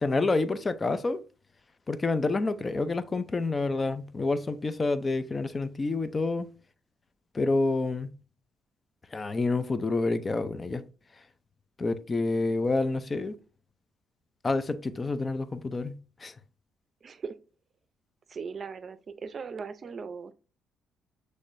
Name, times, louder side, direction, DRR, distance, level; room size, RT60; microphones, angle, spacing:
voice 1, 0.0-1.2 1.9-6.5 7.3-8.1 9.1-10.8 11.8-13.4 14.4-16.3, left 3 dB, 30° left, 0.5 m, -28 dB
voice 2, 17.0-17.4 18.3-20.3, right 5 dB, 45° right, 0.5 m, -38 dB
6.3 x 3.2 x 2.6 m
cardioid pair, 90°, 0 cm